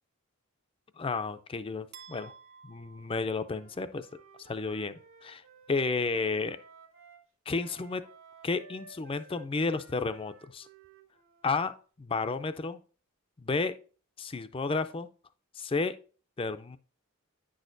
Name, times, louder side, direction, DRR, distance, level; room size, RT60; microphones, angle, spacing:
voice 1, 1.0-2.3 2.6-4.1 4.4-5.4 5.7-6.6 7.5-8.0 8.4-10.7 11.4-11.7 12.0-12.8 13.4-13.7 14.2-15.1 15.6-15.9 16.4-16.8, left 4 dB, 25° left, 11 dB, 0.4 m, -32 dB
sound 1, 1.9-4.1, right 6 dB, 50° right, 0.7 m, -53 dB
Wind instrument woodwind instrument, 3.4-7.2 7.5-11.6, right 4 dB, 75° right, 1.7 m, -56 dB
9.4 x 6.3 x 2.6 m, 0.39 s
head